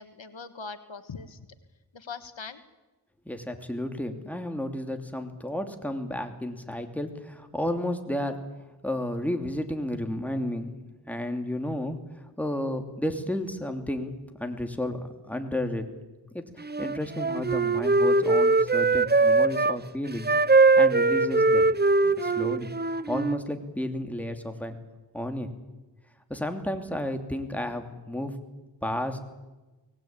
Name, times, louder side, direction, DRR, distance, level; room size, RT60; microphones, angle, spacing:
voice 1, 0.0-1.4 1.9-2.6, left 5 dB, 90° left, 10 dB, 1.5 m, -41 dB
voice 2, 3.3-8.4 8.8-10.8 11.0-14.1 14.4-15.9 16.3-20.3 20.8-21.7 22.0-24.8 25.1-25.5 26.3-28.3 28.8-29.2, left 1 dB, 5° left, 5 dB, 2.7 m, -32 dB
Wind instrument woodwind instrument, 16.6-19.8 20.2-23.4, right 3 dB, 20° right, 0.7 m, -21 dB
24.0 x 18.5 x 8.9 m, 1.1 s
wide cardioid pair, 55°, 45 cm